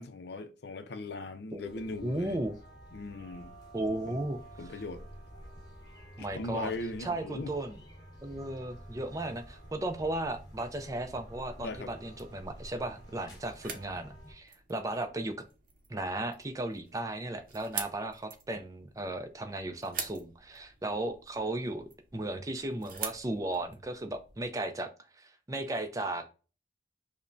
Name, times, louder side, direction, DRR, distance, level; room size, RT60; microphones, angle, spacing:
voice 1, 0.0-2.4 2.9-3.5 4.1-4.2 4.6-5.0 6.2-7.5 11.6-11.9, left 2 dB, 60° left, 0.5 m, -39 dB
sound 1, 1.6-14.3, right 1 dB, 20° left, 1.1 m, -50 dB
voice 2, 2.0-2.6 3.7-4.4 4.6-4.8 6.2-6.7 7.0-7.8 8.2-15.3 15.9-24.9 25.2-26.3, right 1 dB, 20° right, 0.4 m, -35 dB
sound 2, 11.6-24.5, right 6 dB, 50° right, 0.7 m, -46 dB
5.3 x 2.1 x 2.5 m
head